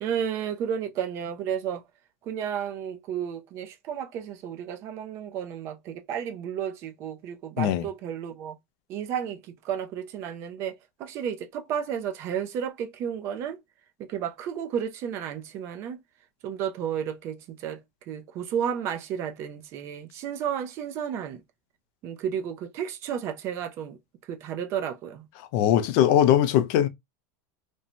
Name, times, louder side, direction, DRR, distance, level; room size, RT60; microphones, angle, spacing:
voice 1, 0.0-1.8 2.2-8.6 8.9-13.6 14.0-16.0 16.4-17.8 18.1-21.4 22.0-24.0 24.3-25.3, right 8 dB, 35° right, 0.4 m, -32 dB
voice 2, 25.5-26.9, left 11 dB, 50° left, 0.4 m, -20 dB
2.6 x 2.1 x 2.7 m
supercardioid pair, 165°, 8 cm